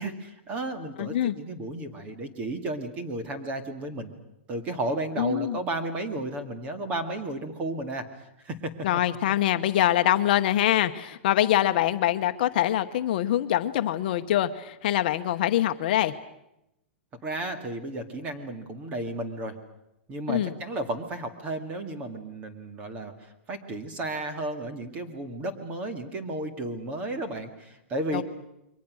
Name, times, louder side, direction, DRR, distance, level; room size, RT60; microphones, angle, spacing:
voice 1, 0.0-4.1 4.5-8.1 8.4-8.7 17.2-19.6 20.1-28.2, right 2 dB, 20° right, 7 dB, 2.1 m, -33 dB
voice 2, 1.0-1.3 5.2-5.6 8.8-16.1 20.3-20.5 28.1-28.2, left 12 dB, 50° left, 8 dB, 1.0 m, -24 dB
29.0 x 23.5 x 6.3 m, 0.86 s
supercardioid pair, 165°, 6 cm